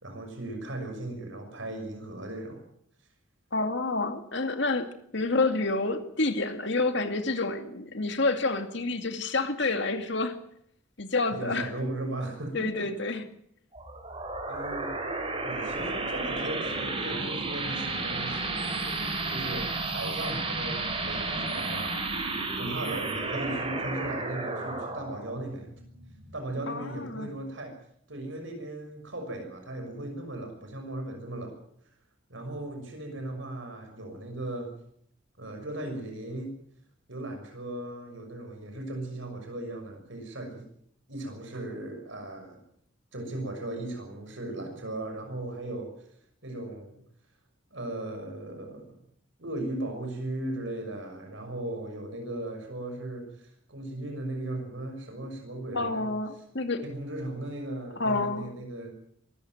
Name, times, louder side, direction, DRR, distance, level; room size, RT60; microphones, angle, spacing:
voice 1, 0.0-2.6 11.3-12.9 14.5-15.0 15.4-18.8 19.3-22.0 22.6-25.7 26.3-27.8 28.1-31.6 32.3-34.7 35.4-36.5 37.1-40.6 41.1-42.6 43.1-45.9 46.4-47.0 47.7-49.0 49.4-53.4 53.7-56.1 56.8-58.9, right 1 dB, 65° right, 4 dB, 6.3 m, -37 dB
voice 2, 3.5-10.4 11.0-11.7 12.5-13.2 26.7-27.3 55.7-56.8 58.0-58.5, left 3 dB, 60° left, 7 dB, 2.3 m, -28 dB
sound 1, 13.7-26.9, right 3 dB, 30° right, 4.8 m, -32 dB
23.5 x 14.0 x 9.2 m, 0.70 s
head